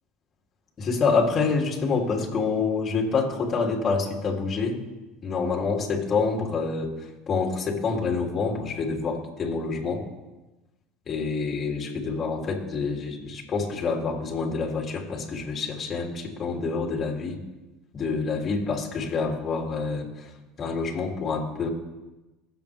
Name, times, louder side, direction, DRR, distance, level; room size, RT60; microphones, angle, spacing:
voice 1, 0.8-4.8 5.2-10.0 11.1-17.4 17.9-20.3 20.6-21.7, left 4 dB, 40° left, -1 dB, 3.3 m, -27 dB
22.0 x 8.2 x 3.6 m, 1.1 s
hypercardioid pair, 85°, 0 cm